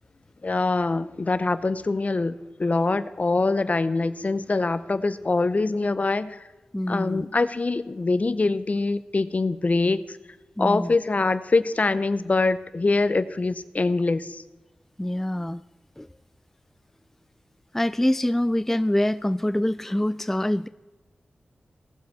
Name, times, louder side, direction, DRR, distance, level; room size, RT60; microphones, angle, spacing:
voice 1, 0.4-6.4 6.9-10.0 10.6-14.4, left 3 dB, 45° left, 14 dB, 0.7 m, -24 dB
voice 2, 6.7-7.3 10.6-10.9 15.0-15.6 16.0-16.1 17.7-20.7, left 1 dB, 10° left, 14 dB, 0.3 m, -25 dB
17.5 x 7.7 x 4.2 m, 1.1 s
cardioid pair, 45°, 3 cm